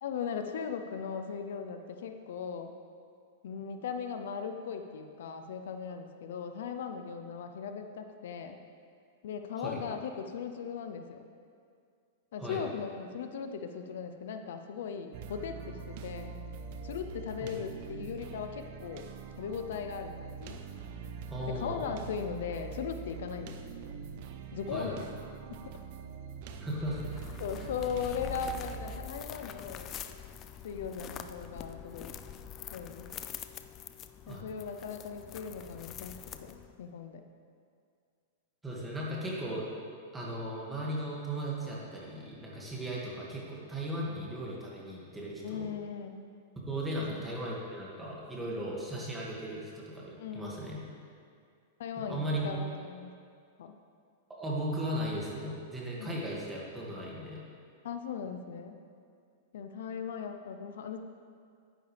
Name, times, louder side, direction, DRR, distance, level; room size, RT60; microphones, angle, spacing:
voice 1, 0.0-2.7 3.4-8.6 9.2-11.3 12.3-16.3 16.8-19.1 19.4-20.6 21.5-23.6 24.5-25.1 25.6-25.8 27.4-29.9 30.6-32.1 32.7-33.1 34.3-37.2 45.4-46.3 50.2-50.7 51.8-53.1 53.6-53.8 56.0-56.2 57.8-58.8 59.5-61.0, left 6 dB, 75° left, 7 dB, 0.7 m, -38 dB
sound 1, 15.1-29.1, right 5 dB, 55° right, 0.7 m, -44 dB
voice 2, 21.3-21.9 24.7-25.1 26.6-27.0 34.3-34.4 38.6-39.7 40.1-45.7 46.7-50.8 52.0-52.5 54.3-57.4, right 1 dB, 10° right, -5 dB, 2.2 m, -37 dB
sound 2, 26.9-36.8, left 9 dB, 30° left, 0.4 m, -45 dB
10.5 x 9.9 x 3.4 m, 2.2 s
hypercardioid pair, 140°, 0 cm